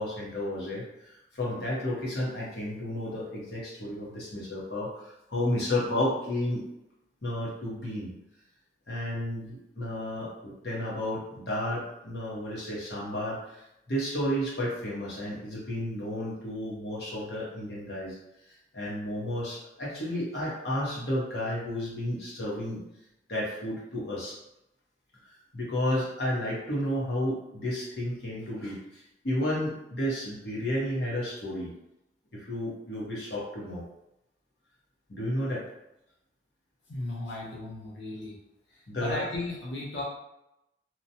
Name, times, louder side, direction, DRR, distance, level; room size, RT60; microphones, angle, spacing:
voice 1, 0.0-6.6 7.2-8.1 8.9-18.2 18.4-22.8 23.3-24.4 25.2-31.7 32.3-33.8 35.1-35.6 38.9-39.2, left 1 dB, 60° left, -6 dB, 1.0 m, -32 dB
voice 2, 36.9-38.4 38.7-40.0, left 2 dB, 80° left, -5 dB, 0.7 m, -36 dB
2.9 x 2.2 x 2.7 m, 0.86 s
head